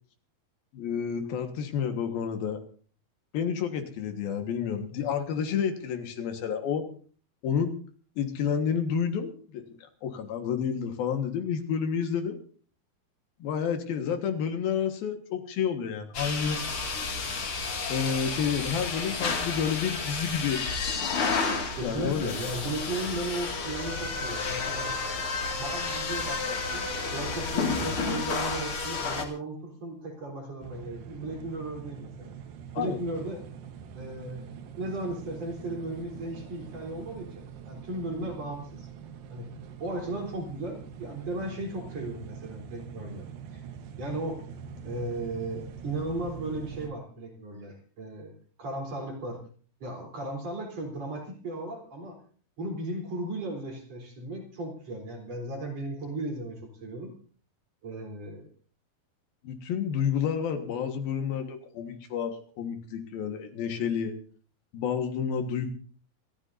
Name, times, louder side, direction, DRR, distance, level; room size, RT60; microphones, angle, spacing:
voice 1, 0.7-2.6 3.3-6.9 7.4-7.7 8.2-9.7 10.0-12.4 13.4-16.6 17.9-20.6 21.8-22.3 32.7-33.0 59.4-64.2 64.7-65.7, left 7 dB, 75° left, 6 dB, 3.3 m, -30 dB
sound 1, 16.1-29.2, left 4 dB, 40° left, 2.6 m, -31 dB
voice 2, 21.8-25.0 25.6-32.3 32.7-33.4 33.9-34.5 34.8-38.9 39.3-39.5 39.8-43.3 43.5-43.6 44.0-44.4 44.8-48.3 48.6-49.4 49.8-52.2 52.6-57.1 57.8-58.5, right 2 dB, 45° right, 1 dB, 4.7 m, -36 dB
sound 2, 30.6-46.9, right 7 dB, 70° right, 2.9 m, -44 dB
27.5 x 14.5 x 2.7 m, 0.43 s
omnidirectional pair, 4.5 m